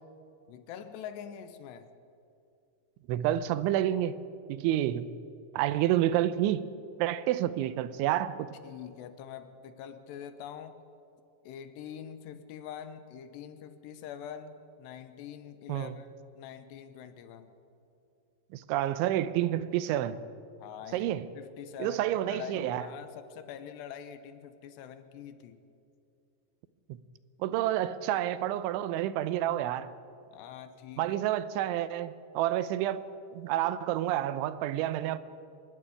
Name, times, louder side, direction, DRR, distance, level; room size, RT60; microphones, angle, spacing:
voice 1, 0.5-1.9 8.6-10.8 11.4-16.1 16.4-17.5 20.6-25.6 30.3-31.2, left 9 dB, 75° left, 2.9 m, -44 dB
voice 2, 3.1-4.2 4.5-5.1 5.5-6.6 7.0-8.5 15.7-16.0 18.5-20.2 20.9-21.3 21.8-22.8 26.9-27.0 27.4-29.9 31.0-33.0 33.3-35.2, right 12 dB, 80° right, 3.1 m, -29 dB
24.5 x 11.5 x 9.8 m
omnidirectional pair, 5.4 m